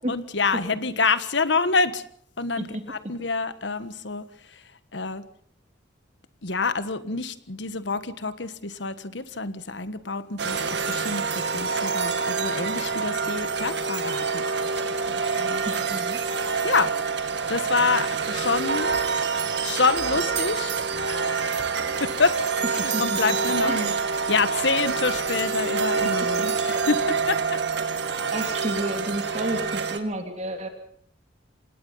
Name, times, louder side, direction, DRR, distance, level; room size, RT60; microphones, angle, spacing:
voice 1, 0.1-2.0 2.4-4.2 4.9-5.2 6.4-11.2 11.5-14.4 15.0-15.9 16.6-16.9 17.5-18.9 19.6-20.7 21.1-21.3 22.0-22.4 22.7-23.9 24.3-27.4, left 4 dB, 70° left, 13 dB, 1.5 m, -27 dB
sound 1, 10.4-30.0, right 5 dB, 65° right, 1.9 m, -26 dB
voice 2, 15.8-16.2 22.8-23.2 23.6-23.9 26.0-26.1 26.4-26.5 28.3-30.7, right 1 dB, 35° right, 5 dB, 2.9 m, -31 dB
26.5 x 19.0 x 5.6 m, 0.62 s
head